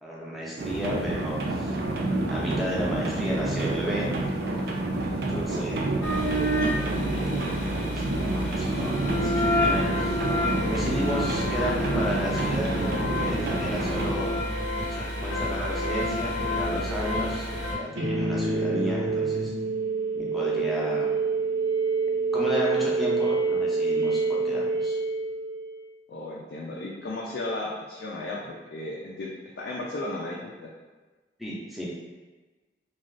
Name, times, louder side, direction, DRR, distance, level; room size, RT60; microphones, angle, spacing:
voice 1, 0.0-1.7 2.3-4.1 4.4-4.5 5.1-5.9 6.3-10.2 10.7-14.4 14.9-19.5 20.1-21.1 22.3-25.0 31.4-31.9, equal, ahead, -6 dB, 0.5 m, -33 dB
sound 1, 0.6-14.1, right 2 dB, 60° right, 0.4 m, -29 dB
sound 2, 6.0-17.7, left 1 dB, 85° left, 0.7 m, -29 dB
sound 3, 17.9-25.9, right 4 dB, 90° right, 0.7 m, -26 dB
voice 2, 26.1-29.3 29.6-30.7, left 2 dB, 65° left, -4 dB, 0.4 m, -34 dB
2.5 x 2.3 x 3.2 m, 1.2 s
head